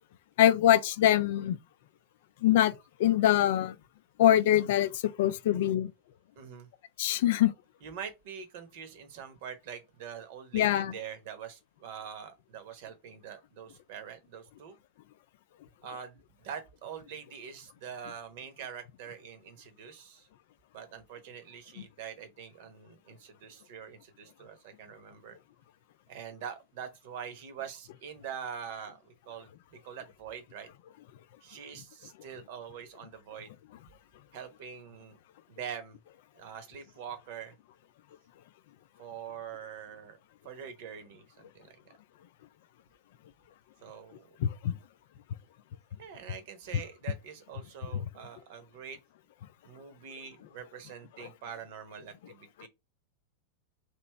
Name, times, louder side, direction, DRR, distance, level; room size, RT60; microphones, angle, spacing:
voice 1, 0.4-1.6 2.4-2.7 3.0-3.7 4.2-5.9 7.0-7.5 10.5-10.9 44.4-44.7, left 12 dB, 55° left, 0.4 m, -24 dB
voice 2, 6.4-6.7 7.8-14.8 15.8-20.3 20.7-25.4 26.1-30.7 31.4-33.5 34.3-35.2 35.5-36.0 36.3-37.6 39.0-40.2 40.4-41.8 43.8-44.3 46.0-49.0 49.6-52.7, right 8 dB, 50° right, 0.9 m, -44 dB
3.3 x 2.9 x 4.5 m
figure-of-eight pair, 90°, 0 cm